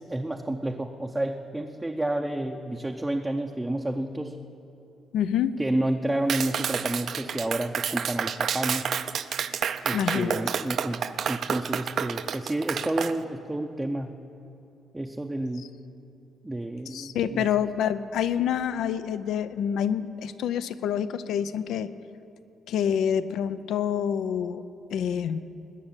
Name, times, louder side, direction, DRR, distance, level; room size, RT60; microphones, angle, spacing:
voice 1, 0.0-4.4 5.6-8.9 9.8-11.0 11.3-14.1 14.9-15.7 16.4-17.5, right 1 dB, 10° right, 3 dB, 0.6 m, -30 dB
voice 2, 5.1-5.5 9.9-10.4 16.9-21.9 22.7-24.6 24.9-25.5, left 8 dB, 80° left, 14 dB, 0.5 m, -27 dB
Clapping, 6.3-13.1, right 7 dB, 55° right, 0.5 m, -29 dB
19.5 x 6.6 x 8.8 m, 3.0 s
cardioid pair, 130°, 0 cm